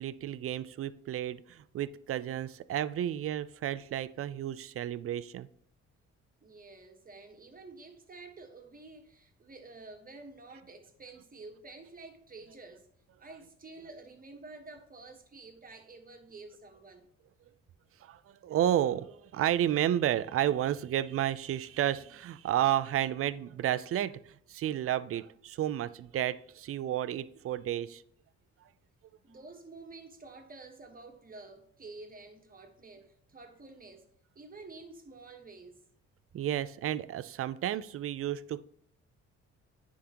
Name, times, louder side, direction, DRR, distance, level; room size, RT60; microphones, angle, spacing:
voice 1, 0.0-5.5 18.0-28.0 36.3-38.6, right 11 dB, 50° right, 0.4 m, -31 dB
voice 2, 6.4-12.9 13.2-17.1 29.2-34.1 34.3-35.8, right 3 dB, 30° right, 1.3 m, -50 dB
9.9 x 3.7 x 2.9 m
cardioid pair, 90°, 30 cm